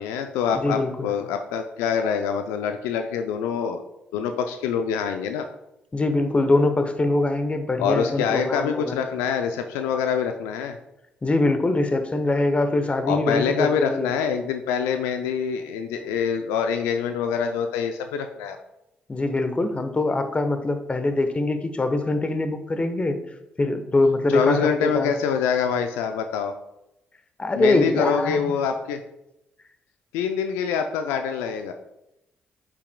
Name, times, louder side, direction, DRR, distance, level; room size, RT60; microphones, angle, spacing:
voice 1, 0.0-3.8 4.1-5.5 7.8-10.8 13.0-18.6 24.3-26.5 27.5-29.0 30.1-31.7, left 7 dB, 85° left, 6 dB, 0.4 m, -25 dB
voice 2, 0.5-1.1 5.9-9.0 11.2-14.1 19.1-23.2 23.6-25.1 27.4-28.4, left 2 dB, 30° left, 8 dB, 0.9 m, -23 dB
8.2 x 5.9 x 2.2 m, 0.88 s
hypercardioid pair, 45°, 4 cm